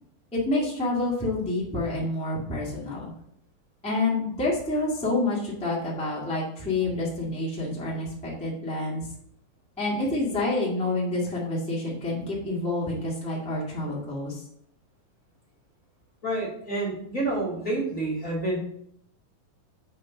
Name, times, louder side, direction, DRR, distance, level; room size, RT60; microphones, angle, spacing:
voice 1, 0.3-3.1 3.8-9.0 9.8-14.4, left 2 dB, 5° left, -6 dB, 0.5 m, -28 dB
voice 2, 16.2-18.6, right 2 dB, 35° left, -4 dB, 1.3 m, -28 dB
6.5 x 3.8 x 6.1 m, 0.73 s
omnidirectional pair, 4.1 m